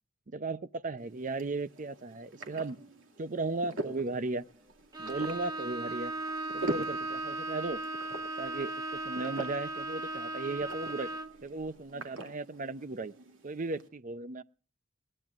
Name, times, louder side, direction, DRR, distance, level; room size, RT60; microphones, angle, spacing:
voice 1, 0.3-2.8 3.2-4.5 5.0-6.1 6.5-7.8 8.4-8.7 9.0-11.1 11.4-13.1 13.4-14.4, right 3 dB, 40° right, 14 dB, 0.6 m, -36 dB
sound 1, 1.0-13.9, right 1 dB, 80° right, 2.4 m, -44 dB
Bowed string instrument, 4.9-11.4, right 2 dB, 20° right, 1.2 m, -37 dB
21.0 x 17.5 x 2.4 m, 0.37 s
head